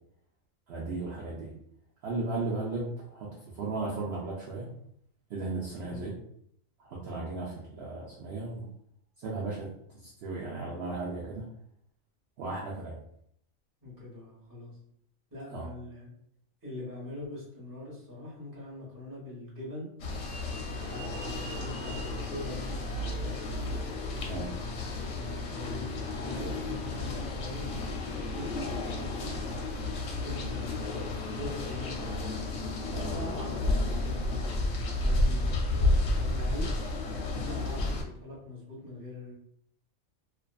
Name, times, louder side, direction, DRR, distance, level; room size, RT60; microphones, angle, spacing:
voice 1, 0.7-1.5 2.0-4.7 5.3-6.1 6.8-8.7 9.2-9.7 10.0-11.4 12.4-12.9 15.5-15.6 24.3-24.5 32.9-33.2 37.8-37.9, right 3 dB, 65° right, -5 dB, 0.7 m, -35 dB
voice 2, 13.8-14.7 15.3-16.1 16.6-19.9 20.8-23.3 24.4-36.7 37.4-39.3, left 2 dB, 15° right, -6 dB, 0.8 m, -43 dB
sound 1, 20.0-38.0, left 2 dB, 70° left, 0.8 m, -32 dB
2.5 x 2.2 x 2.3 m, 0.70 s
omnidirectional pair, 1.4 m